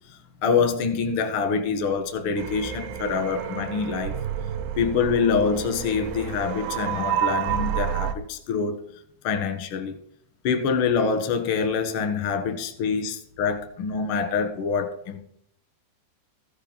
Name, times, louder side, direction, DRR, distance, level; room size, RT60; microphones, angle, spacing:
voice 1, 0.1-4.1 4.8-8.8 9.2-9.9 10.4-15.2, left 5 dB, 65° left, 5 dB, 1.3 m, -25 dB
sound 1, 2.4-8.1, right 10 dB, 75° right, 2.8 m, -29 dB
15.0 x 8.2 x 5.5 m, 0.66 s
omnidirectional pair, 5.1 m